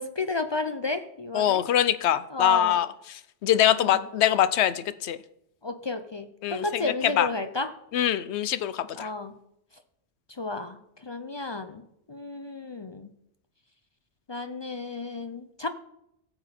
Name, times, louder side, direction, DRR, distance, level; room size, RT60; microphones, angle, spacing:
voice 1, 0.0-1.6 2.3-2.8 3.8-4.0 5.6-7.7 9.0-9.4 10.4-13.1 14.3-15.7, left 2 dB, 45° left, 9 dB, 0.3 m, -32 dB
voice 2, 1.3-5.2 6.4-7.3 7.9-9.1, left 11 dB, 70° left, 14 dB, 0.8 m, -24 dB
15.5 x 6.9 x 4.3 m, 0.79 s
omnidirectional pair, 1.2 m